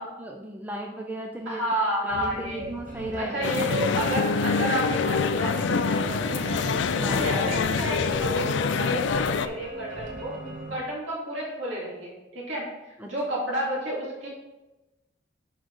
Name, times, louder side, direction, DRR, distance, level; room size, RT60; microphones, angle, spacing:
voice 1, 0.0-1.6 2.0-3.5 7.0-7.3 13.0-13.1, right 1 dB, 10° right, 2 dB, 0.4 m, -36 dB
voice 2, 1.4-2.7 3.1-6.6 6.9-10.3 10.7-14.3, equal, 70° right, -5 dB, 2.6 m, -31 dB
sound 1, 2.1-10.8, equal, 40° right, 1.1 m, -38 dB
sound 2, 3.4-9.5, left 5 dB, 60° left, 0.4 m, -26 dB
5.9 x 5.1 x 4.8 m, 1.0 s
head